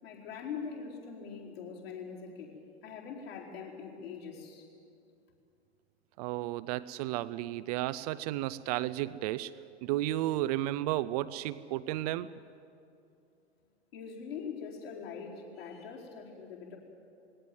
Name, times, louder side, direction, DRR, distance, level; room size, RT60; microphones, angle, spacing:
voice 1, 0.0-2.5 2.8-4.7 13.9-16.8, left 6 dB, 60° left, -4 dB, 4.6 m, -43 dB
voice 2, 6.2-9.5 9.8-12.3, right 15 dB, 35° right, 14 dB, 0.5 m, -33 dB
21.0 x 17.5 x 9.3 m, 2.6 s
figure-of-eight pair, 95°, 33 cm